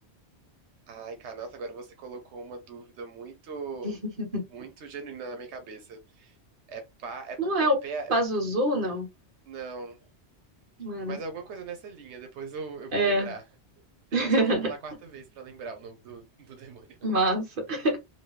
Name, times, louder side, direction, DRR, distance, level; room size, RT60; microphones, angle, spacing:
voice 1, 0.9-4.0 4.5-6.4 6.7-7.4 7.8-8.1 9.5-10.0 11.0-13.4 14.1-17.0, right 4 dB, 90° right, 1.0 m, -40 dB
voice 2, 3.8-4.4 7.4-7.8 8.1-9.1 10.8-11.2 12.9-13.3 14.1-14.7 17.0-18.0, right 1 dB, 50° right, 1.3 m, -26 dB
3.0 x 2.7 x 3.1 m
omnidirectional pair, 1.1 m